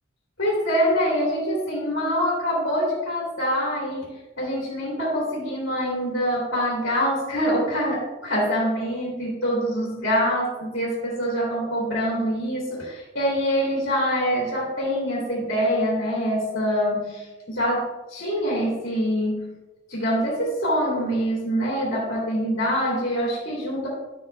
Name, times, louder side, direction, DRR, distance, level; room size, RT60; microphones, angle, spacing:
voice 1, 0.4-19.5 19.9-23.9, equal, 65° left, -5 dB, 2.5 m, -25 dB
12.0 x 5.8 x 2.3 m, 1.1 s
head